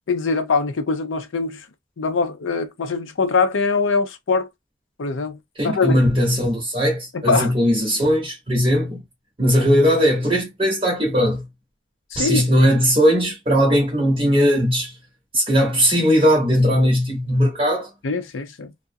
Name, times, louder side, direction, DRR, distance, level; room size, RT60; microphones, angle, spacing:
voice 1, 0.0-1.7 2.0-4.5 5.0-5.4 5.6-6.0 7.1-7.5 12.1-12.6 18.0-18.7, left 4 dB, 90° left, 0.5 m, -22 dB
voice 2, 5.6-9.0 9.4-11.4 12.2-15.0 15.3-17.9, equal, 25° right, 0.8 m, -18 dB
2.4 x 2.0 x 2.5 m
head